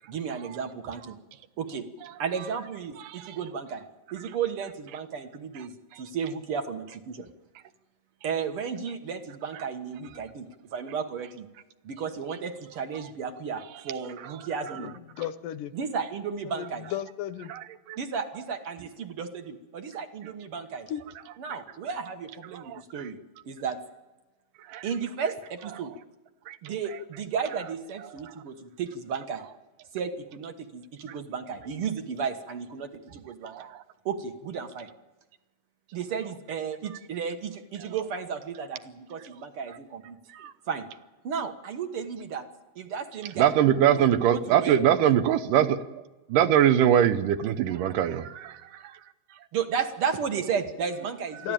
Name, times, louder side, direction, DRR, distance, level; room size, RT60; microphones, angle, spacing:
voice 1, 0.1-1.2 1.6-1.8 2.2-3.8 4.1-5.7 6.0-7.3 8.2-11.5 11.8-14.9 15.7-16.9 18.0-20.9 21.4-23.2 23.4-23.8 24.8-25.9 26.6-29.4 29.9-33.7 34.0-34.9 35.9-40.2 40.7-40.9 41.2-42.5 42.7-43.5 43.9-44.8 49.5-51.5, right 6 dB, 55° right, 7 dB, 1.8 m, -33 dB
voice 2, 15.2-15.7 16.5-17.5 20.9-21.0 51.4-51.5, left 12 dB, 75° left, 13 dB, 2.4 m, -34 dB
voice 3, 17.5-18.0 22.7-22.8 24.7-24.8 26.5-26.6 33.5-33.7 40.4-40.5 43.4-46.0 46.3-48.6, right 10 dB, 80° right, 11 dB, 2.5 m, -22 dB
22.5 x 14.5 x 8.9 m, 1.1 s
omnidirectional pair, 3.9 m